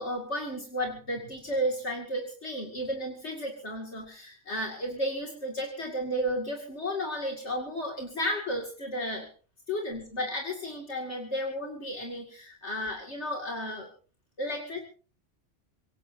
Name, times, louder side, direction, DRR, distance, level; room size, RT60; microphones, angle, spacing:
voice 1, 0.0-9.3 9.7-13.9 14.4-14.8, equal, 65° left, 1 dB, 2.8 m, -33 dB
25.5 x 18.0 x 2.8 m, 0.38 s
omnidirectional pair, 1.3 m